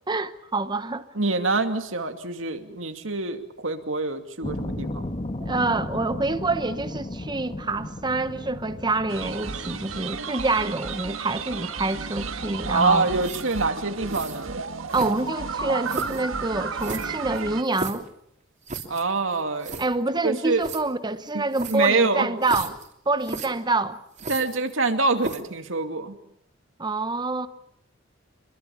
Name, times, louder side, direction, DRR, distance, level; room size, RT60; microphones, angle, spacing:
voice 1, 0.1-1.0 5.4-13.1 14.9-18.0 19.8-22.8 23.1-24.0 26.8-27.5, right 3 dB, 20° right, 0.9 m, -26 dB
voice 2, 1.2-5.0 12.7-14.6 18.9-19.9 20.2-20.6 21.3-22.3 24.3-26.1, right 3 dB, 70° right, 2.5 m, -25 dB
sound 1, 4.4-10.0, left 1 dB, 30° left, 1.3 m, -34 dB
sound 2, 9.1-17.6, right 5 dB, 90° right, 1.7 m, -33 dB
sound 3, 13.2-13.6 14.1-14.4 14.9-15.4 15.9-16.2 16.8-18.1 18.7-19.0 19.3-19.4 19.6-19.9 20.6-20.8 21.5-21.9 22.4-22.9 23.2-23.5 24.2-24.8 25.2-25.5, right 3 dB, 40° right, 3.3 m, -35 dB
26.0 x 23.0 x 7.2 m
head